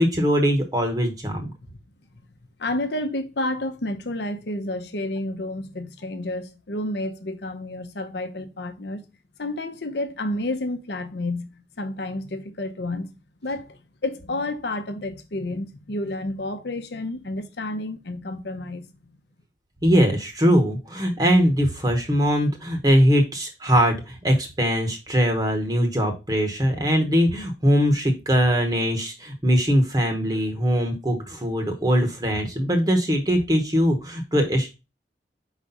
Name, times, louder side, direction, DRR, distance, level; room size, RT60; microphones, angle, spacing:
voice 1, 0.0-1.5 19.8-34.8, equal, 20° right, 0.9 m, -21 dB
voice 2, 2.6-9.0 9.4-13.1 13.4-18.8, left 1 dB, 65° left, 0.8 m, -30 dB
4.8 x 4.1 x 5.3 m
head